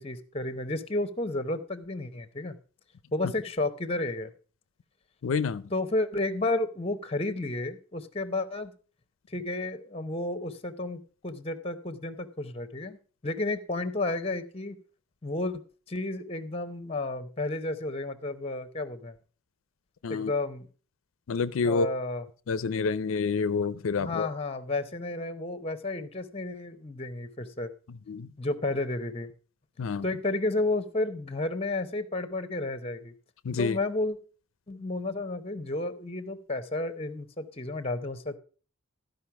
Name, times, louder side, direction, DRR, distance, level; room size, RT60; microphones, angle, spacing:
voice 1, 0.0-2.5 3.1-4.3 5.7-8.7 9.3-13.0 13.2-14.8 15.2-15.6 15.9-19.2 20.1-20.7 21.6-22.2 24.0-27.7 28.4-29.3 30.0-33.1 33.6-34.2 34.7-38.4, left 2 dB, 30° left, 0.8 m, -32 dB
voice 2, 5.2-5.6 20.0-20.3 21.3-21.9 22.5-24.3 28.1-28.3 29.8-30.0 33.4-33.8, left 5 dB, 85° left, 0.5 m, -28 dB
13.0 x 5.3 x 5.8 m
head